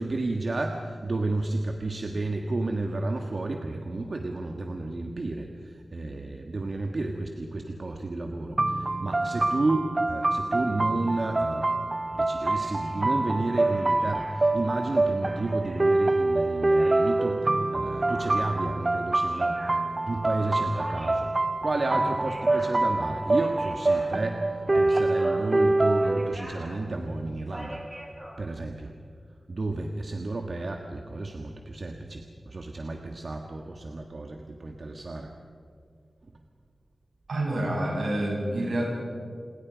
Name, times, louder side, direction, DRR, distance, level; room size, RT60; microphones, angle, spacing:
voice 1, 0.0-11.8 12.1-19.6 20.1-21.3 21.6-27.8 28.4-28.9 29.5-35.3, right 2 dB, 55° right, 3 dB, 1.6 m, -32 dB
sound 1, 8.6-26.3, right 2 dB, 40° right, 0.7 m, -25 dB
sound 2, 12.4-17.3 18.0-28.4, equal, 20° right, 5.1 m, -45 dB
voice 2, 37.3-38.8, right 1 dB, 85° right, -2 dB, 7.8 m, -27 dB
29.0 x 21.0 x 5.2 m, 2.3 s
wide cardioid pair, 60°, 0 cm